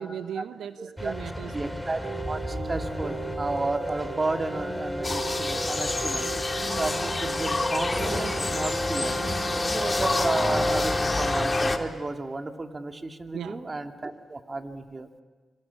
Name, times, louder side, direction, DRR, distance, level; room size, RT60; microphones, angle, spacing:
voice 1, 0.0-1.8 10.0-10.1 13.3-13.7, right 8 dB, 85° right, 13 dB, 0.7 m, -37 dB
voice 2, 0.8-1.2 1.5-6.3 6.8-9.2 9.7-15.1, right 2 dB, 35° right, 6 dB, 2.5 m, -32 dB
sound 1, 1.0-11.8, left 1 dB, 5° left, 3.2 m, -32 dB
sound 2, 2.0-10.9, right 4 dB, 60° right, 5.0 m, -38 dB
sound 3, 5.0-11.8, left 3 dB, 35° left, 2.3 m, -29 dB
26.0 x 24.0 x 8.5 m, 1.4 s
supercardioid pair, 55°, 0 cm